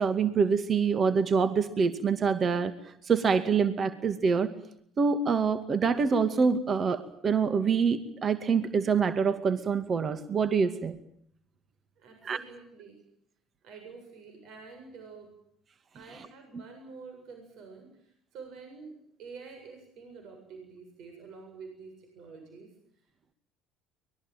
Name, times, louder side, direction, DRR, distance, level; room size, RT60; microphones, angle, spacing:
voice 1, 0.0-2.7 3.1-4.5 5.0-10.9 12.2-12.4, right 5 dB, 35° right, 10 dB, 2.3 m, -25 dB
voice 2, 12.0-13.0 13.6-15.3 15.9-22.7, right 4 dB, 60° right, 4 dB, 7.6 m, -48 dB
24.5 x 21.5 x 9.2 m, 0.70 s
hypercardioid pair, 65°, 0 cm